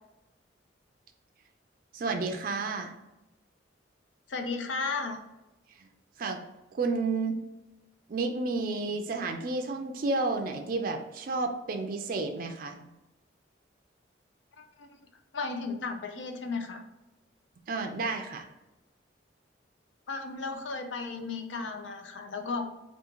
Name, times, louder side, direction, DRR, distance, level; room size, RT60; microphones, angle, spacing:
voice 1, 1.9-2.9 5.8-5.9 6.2-6.4 6.7-7.4 8.1-12.9 17.7-18.5, right 3 dB, 50° right, 4 dB, 0.4 m, -31 dB
voice 2, 4.3-5.2 14.6-14.9 15.3-16.8 20.1-22.7, left 4 dB, 80° left, 5 dB, 0.5 m, -34 dB
3.6 x 2.4 x 3.0 m, 0.98 s
head